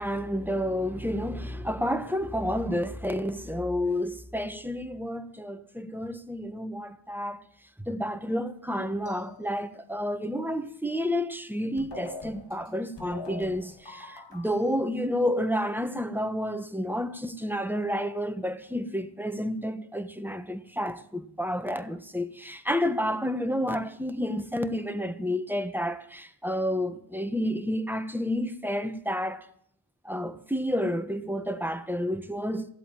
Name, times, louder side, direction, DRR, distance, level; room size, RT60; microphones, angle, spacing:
voice 1, 0.0-7.4 7.8-29.5 30.0-32.7, equal, 5° right, 1.3 m, -30 dB
sound 1, 9.1-9.9 11.5-11.6 11.8-14.8, left 3 dB, 90° left, 2.1 m, -43 dB
16.0 x 8.1 x 9.2 m
wide cardioid pair, 45°, 41 cm